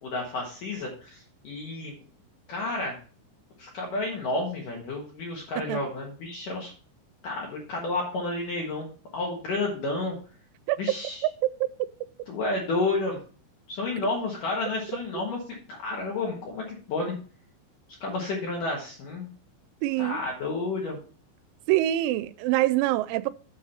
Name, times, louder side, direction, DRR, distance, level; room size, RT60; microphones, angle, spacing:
voice 1, 0.0-1.9 2.5-3.0 3.6-6.7 7.2-10.2 10.8-11.3 12.3-13.2 13.7-17.1 18.0-19.3 20.0-21.0, left 2 dB, 65° left, 2.2 m, -31 dB
voice 2, 19.8-20.2 21.7-23.3, right 15 dB, 90° right, 3.3 m, -25 dB
7.5 x 7.2 x 4.2 m
omnidirectional pair, 5.9 m